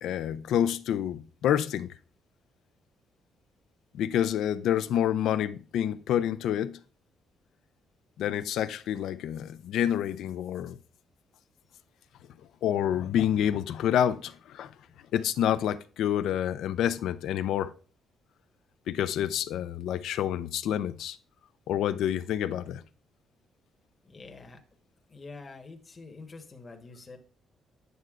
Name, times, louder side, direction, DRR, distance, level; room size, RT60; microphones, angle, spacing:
voice 1, 0.0-1.9 3.9-6.8 8.2-10.8 12.6-14.7 15.1-17.7 18.9-21.2 21.7-22.8, left 10 dB, 80° left, 0.4 m, -28 dB
voice 2, 24.0-24.6 25.1-27.2, left 3 dB, 35° left, 1.1 m, -46 dB
9.3 x 6.7 x 2.4 m
cardioid pair, 90°, 0 cm